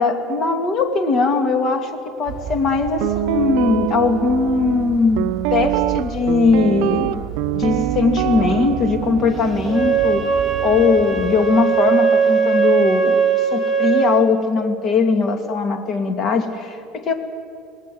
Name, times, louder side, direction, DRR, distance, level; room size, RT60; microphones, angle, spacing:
voice 1, 0.0-1.9 2.2-7.2 7.5-10.2 10.6-13.2 13.5-17.1, left 4 dB, 35° left, 6 dB, 2.4 m, -19 dB
sound 1, 2.3-11.4, right 6 dB, 45° right, 3.7 m, -33 dB
Guitar, 3.0-11.2, right 17 dB, 80° right, 0.5 m, -25 dB
Wind instrument woodwind instrument, 9.7-14.1, right 6 dB, 10° right, 2.2 m, -19 dB
27.0 x 19.5 x 7.8 m, 2.3 s
cardioid pair, 160°, 0 cm